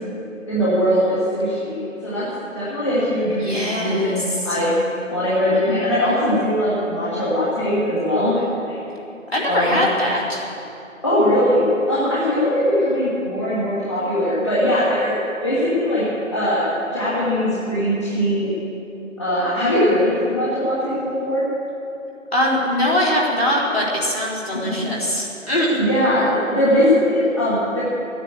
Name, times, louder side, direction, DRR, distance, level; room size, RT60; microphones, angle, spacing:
voice 1, 0.5-2.3 2.5-4.7 5.1-8.8 9.4-9.8 11.0-15.2 15.4-16.0 16.3-16.6 16.9-18.5 19.2-21.5 24.5-24.9 25.8-27.8, equal, 20° left, -10 dB, 2.2 m, -20 dB
voice 2, 3.4-4.1 9.3-10.5 22.3-25.8, left 1 dB, 50° left, -5 dB, 4.2 m, -21 dB
14.5 x 9.9 x 8.5 m, 2.8 s
figure-of-eight pair, 170°, 40 cm